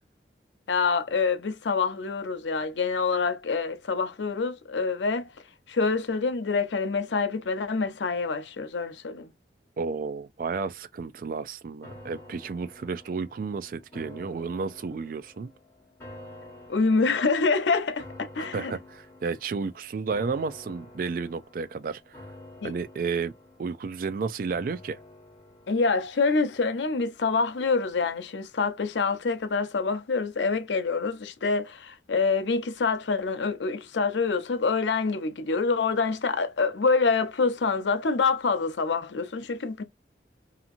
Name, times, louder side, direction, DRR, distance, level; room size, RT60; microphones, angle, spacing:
voice 1, 0.7-5.3 5.7-9.3 16.7-18.7 22.6-22.7 25.7-39.8, left 4 dB, 85° left, 0.6 m, -26 dB
voice 2, 9.8-15.5 18.4-22.1 22.6-23.3 23.6-25.0, right 4 dB, 50° right, 0.3 m, -32 dB
sound 1, 11.8-27.1 27.5-27.6, left 1 dB, 15° left, 1.4 m, -49 dB
2.8 x 2.5 x 2.4 m
head